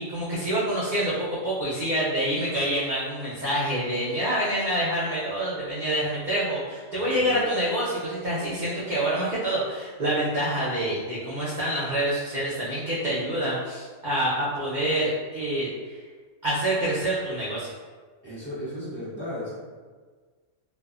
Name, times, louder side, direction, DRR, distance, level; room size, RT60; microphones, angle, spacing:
voice 1, 0.0-16.0 16.4-17.7, right 1 dB, 55° right, -9 dB, 0.5 m, -27 dB
voice 2, 6.9-7.4 18.2-19.5, left 1 dB, 25° left, -11 dB, 0.9 m, -35 dB
2.5 x 2.5 x 2.3 m, 1.5 s
omnidirectional pair, 1.4 m